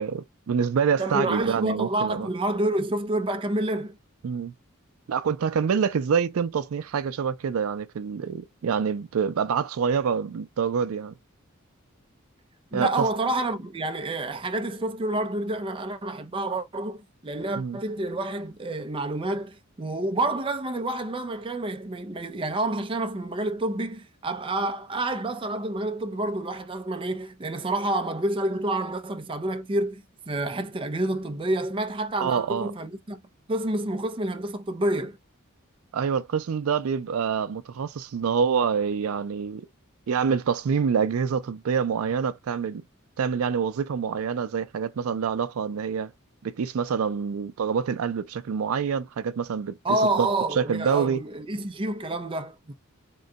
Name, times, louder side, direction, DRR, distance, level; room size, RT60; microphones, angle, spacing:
voice 1, 0.0-2.3 4.2-4.5 5.1-11.1 12.7-13.1 17.5-17.8 32.2-32.7 35.9-39.7 40.1-42.8 43.2-46.1 46.4-49.8 50.0-51.2, right 6 dB, 80° right, 0.4 m, -26 dB
voice 2, 1.0-4.0 12.7-33.2 33.5-35.2 49.8-52.7, right 1 dB, 25° right, 0.5 m, -28 dB
3.7 x 2.2 x 3.8 m
head